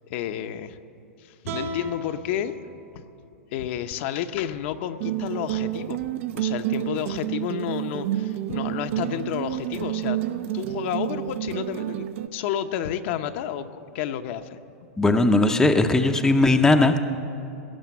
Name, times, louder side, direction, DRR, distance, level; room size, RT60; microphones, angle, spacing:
voice 1, 0.1-0.8 1.2-2.5 2.9-3.0 3.5-6.0 6.3-10.2 10.5-12.1 12.3-14.6, left 10 dB, 50° left, 8 dB, 0.7 m, -31 dB
sound 1, 1.4-4.6, right 2 dB, 75° right, 2.6 m, -38 dB
sound 2, 5.0-12.3, right 13 dB, 60° right, 0.6 m, -29 dB
voice 2, 15.0-17.0, left 2 dB, 5° left, 6 dB, 0.6 m, -18 dB
18.0 x 6.8 x 9.2 m, 2.8 s
hypercardioid pair, 135°, 8 cm